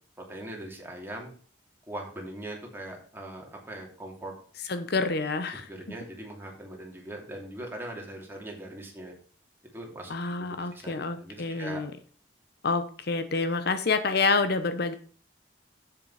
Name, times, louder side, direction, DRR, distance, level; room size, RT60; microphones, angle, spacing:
voice 1, 0.3-1.3 1.9-4.3 5.5-9.1 9.7-11.8, right 1 dB, 10° right, -1 dB, 2.7 m, -41 dB
voice 2, 4.7-5.7 10.1-11.9 12.6-15.0, left 4 dB, 60° left, 10 dB, 0.8 m, -28 dB
7.9 x 7.3 x 4.8 m, 0.43 s
head